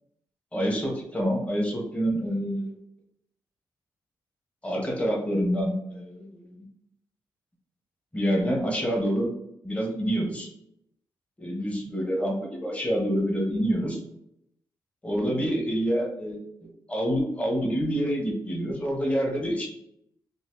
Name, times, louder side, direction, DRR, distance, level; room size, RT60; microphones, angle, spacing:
voice 1, 0.5-2.8 4.6-6.7 8.1-9.3 9.6-10.5 11.4-14.0 15.0-19.7, equal, 15° left, -1 dB, 0.9 m, -27 dB
3.9 x 2.4 x 2.6 m, 0.77 s
cardioid pair, 90°, 8 cm